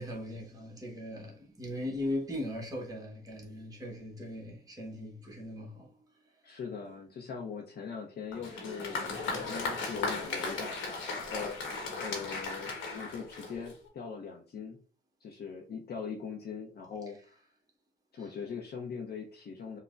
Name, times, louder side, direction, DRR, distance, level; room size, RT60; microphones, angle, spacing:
voice 1, 0.0-5.9 18.2-18.3, left 1 dB, 20° right, 1.0 m, -39 dB
voice 2, 6.4-14.8 15.2-17.2 18.1-19.8, left 6 dB, 55° left, 0.6 m, -41 dB
Applause, 8.3-13.9, left 3 dB, 80° left, 1.1 m, -36 dB
5.4 x 2.1 x 2.4 m
cardioid pair, 90°, 20 cm